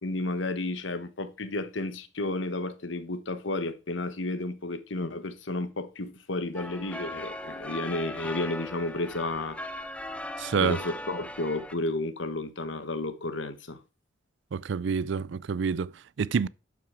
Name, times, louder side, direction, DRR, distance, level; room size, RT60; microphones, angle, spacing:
voice 1, 0.0-9.8 10.0-13.8, left 2 dB, 70° left, 1.2 m, -32 dB
sound 1, 6.5-11.7, left 1 dB, 5° left, 0.7 m, -39 dB
voice 2, 10.4-10.8 14.5-15.9 16.2-16.5, right 6 dB, 65° right, 0.4 m, -27 dB
12.0 x 5.9 x 4.9 m
head